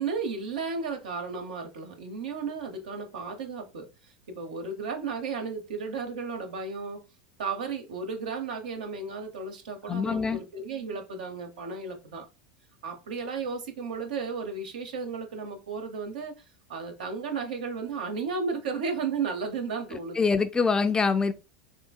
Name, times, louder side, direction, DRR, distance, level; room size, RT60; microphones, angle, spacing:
voice 1, 0.0-7.0 7.4-12.3 12.8-16.3 16.7-20.3, right 5 dB, 80° right, 0.9 m, -34 dB
voice 2, 9.9-10.4 20.2-21.3, left 5 dB, 15° left, 0.3 m, -24 dB
3.7 x 2.7 x 2.3 m
hypercardioid pair, 95°, 4 cm